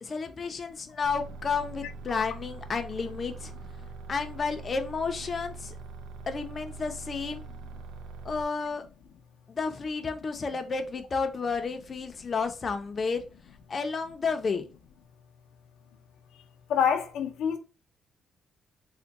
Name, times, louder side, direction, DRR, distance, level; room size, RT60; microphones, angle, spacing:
voice 1, 0.0-3.5 4.1-5.8 6.3-7.4 8.2-8.9 9.5-13.2 13.7-14.7, left 5 dB, 35° left, 0.5 m, -31 dB
sound 1, 1.0-8.4, right 3 dB, 85° right, 0.4 m, -43 dB
voice 2, 16.7-17.6, left 7 dB, 85° left, 0.5 m, -26 dB
3.4 x 2.1 x 3.9 m
cardioid pair, 140°, 0 cm